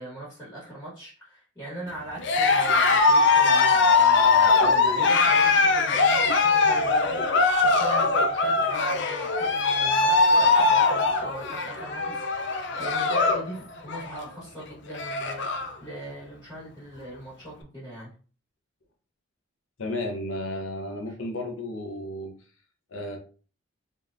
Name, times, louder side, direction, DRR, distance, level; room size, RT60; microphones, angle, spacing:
voice 1, 0.0-18.1, right 1 dB, 10° left, -6 dB, 1.6 m, -40 dB
Cheering, 2.2-13.5 13.8-14.2 14.6-14.7 14.9-15.7, left 4 dB, 60° left, 0.5 m, -21 dB
voice 2, 19.8-22.3 22.9-23.2, left 1 dB, 80° left, 2 dB, 0.9 m, -33 dB
3.7 x 3.2 x 2.6 m, 0.38 s
head